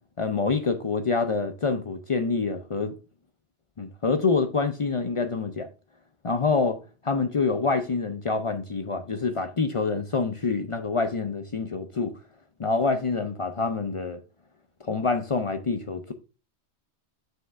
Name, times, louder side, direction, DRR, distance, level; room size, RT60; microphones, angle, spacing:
voice 1, 0.2-2.9 3.8-5.7 6.2-6.8 7.0-12.1 12.6-14.2 14.8-16.1, left 4 dB, 50° left, 0.4 m, -26 dB
7.1 x 6.3 x 2.4 m
omnidirectional pair, 1.2 m